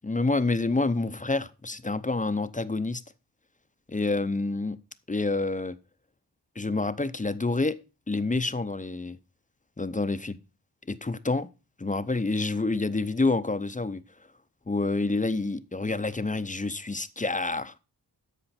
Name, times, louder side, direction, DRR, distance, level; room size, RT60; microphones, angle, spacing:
voice 1, 0.0-3.0 3.9-4.8 5.1-5.8 6.6-7.8 8.1-9.2 9.8-10.3 10.9-11.5 11.8-14.0 14.7-17.7, left 3 dB, 20° left, 0.6 m, -28 dB
13.5 x 5.0 x 4.2 m
cardioid pair, 50°, 43 cm